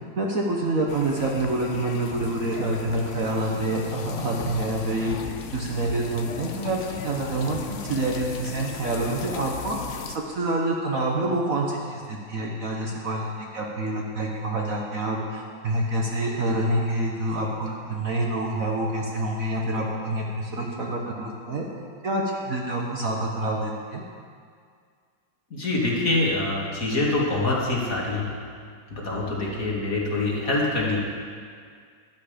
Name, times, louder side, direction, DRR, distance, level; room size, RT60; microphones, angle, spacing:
voice 1, 0.2-21.6 22.0-24.0, right 2 dB, 50° right, -1 dB, 1.4 m, -27 dB
sound 1, 0.9-10.2, left 7 dB, 75° left, 0.6 m, -36 dB
voice 2, 25.5-28.3 28.9-31.0, left 2 dB, 45° left, -4 dB, 2.5 m, -25 dB
12.5 x 11.0 x 5.1 m, 2.1 s
omnidirectional pair, 2.1 m